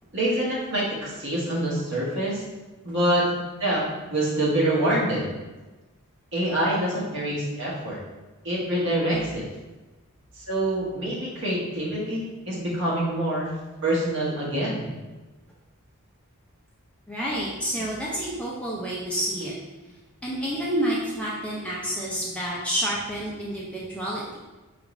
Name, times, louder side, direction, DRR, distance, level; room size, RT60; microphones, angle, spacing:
voice 1, 0.1-2.4 2.8-5.3 6.3-8.0 8.4-9.4 10.3-13.5 13.8-14.9, right 1 dB, 55° right, -5 dB, 1.1 m, -26 dB
voice 2, 17.1-19.5 20.2-24.4, right 1 dB, 5° left, -5 dB, 0.5 m, -29 dB
4.5 x 2.5 x 3.0 m, 1.2 s
head